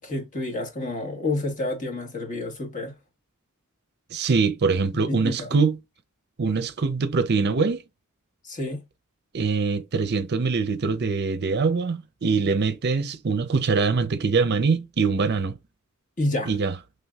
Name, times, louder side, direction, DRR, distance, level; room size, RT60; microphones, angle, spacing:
voice 1, 0.0-2.9 4.9-5.6 8.4-8.8 16.2-16.5, left 2 dB, 35° left, 1.3 m, -29 dB
voice 2, 4.1-5.8 6.4-7.8 9.3-15.5 16.5-16.7, right 4 dB, 50° right, 0.5 m, -23 dB
5.6 x 3.3 x 2.3 m
head